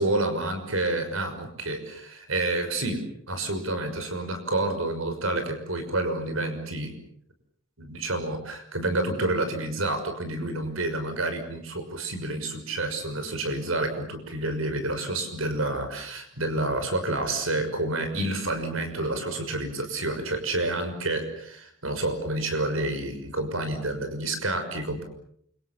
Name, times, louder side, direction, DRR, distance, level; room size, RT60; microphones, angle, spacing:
voice 1, 0.0-3.0 3.3-6.9 7.8-25.0, right 2 dB, 80° right, 7 dB, 6.1 m, -29 dB
29.0 x 26.0 x 7.1 m, 0.68 s
head